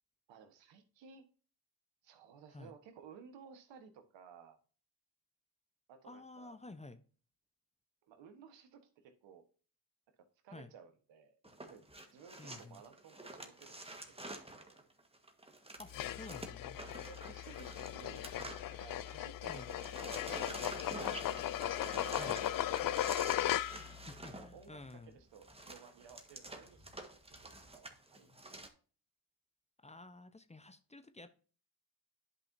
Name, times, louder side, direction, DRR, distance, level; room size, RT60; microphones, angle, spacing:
voice 1, 0.3-1.2 2.0-4.6 5.9-6.6 8.1-9.4 10.2-11.3 11.6-11.8 12.1-14.3 14.6-14.8 17.1-18.2 18.8-20.6 20.9-21.3 21.6-23.4 24.4-28.3, right 6 dB, 75° right, 1.5 m, -57 dB
voice 2, 6.0-7.0 10.5-10.7 12.4-12.8 15.8-16.8 19.5-19.7 22.2-22.4 24.1-25.2 29.8-31.3, left 2 dB, 15° left, 0.9 m, -51 dB
sound 1, 11.4-19.2 19.4-28.7, right 2 dB, 15° right, 1.6 m, -49 dB
sound 2, 15.9-24.0, left 12 dB, 50° left, 0.5 m, -37 dB
10.5 x 5.5 x 2.8 m
supercardioid pair, 55°, 45 cm